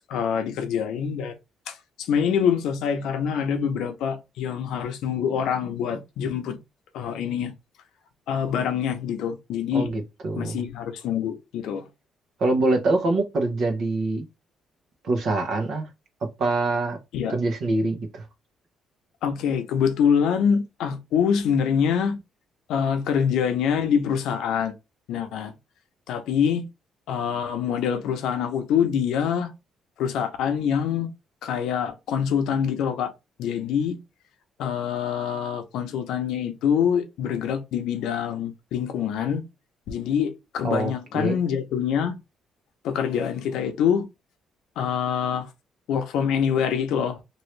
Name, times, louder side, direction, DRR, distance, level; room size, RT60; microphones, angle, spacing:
voice 1, 0.0-1.4 1.7-6.6 6.9-7.5 8.3-9.9 10.4-11.9 17.1-17.3 19.2-22.2 22.7-24.7 25.1-25.5 26.1-26.7 27.1-29.5 30.0-31.1 31.4-33.1 33.4-34.0 34.6-39.4 39.9-42.2 42.8-44.1 44.8-45.5 45.9-47.2, left 7 dB, 80° left, 0.7 m, -25 dB
voice 2, 9.7-10.6 12.4-14.3 15.0-15.9 16.4-17.0 17.3-18.2 40.6-41.4, right 2 dB, 50° right, 0.8 m, -24 dB
3.1 x 2.6 x 3.1 m
cardioid pair, 180°, 0 cm